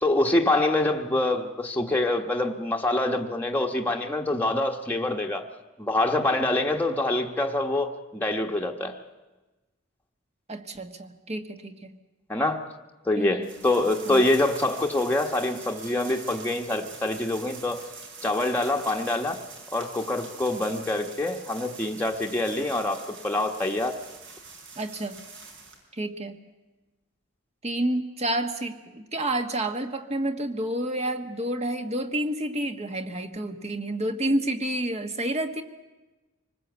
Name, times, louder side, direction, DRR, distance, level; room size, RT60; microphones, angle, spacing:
voice 1, 0.0-5.5 5.8-9.0 12.3-12.6 13.0-17.9 18.2-19.4 19.7-24.0, left 2 dB, 10° left, 1.2 m, -25 dB
voice 2, 10.5-11.9 13.2-13.5 14.1-14.2 24.8-25.2 25.9-26.4 27.6-35.6, right 1 dB, 35° right, 1.5 m, -29 dB
sound 1, 13.4-25.8, right 4 dB, 65° right, 5.1 m, -44 dB
25.5 x 19.5 x 8.2 m
head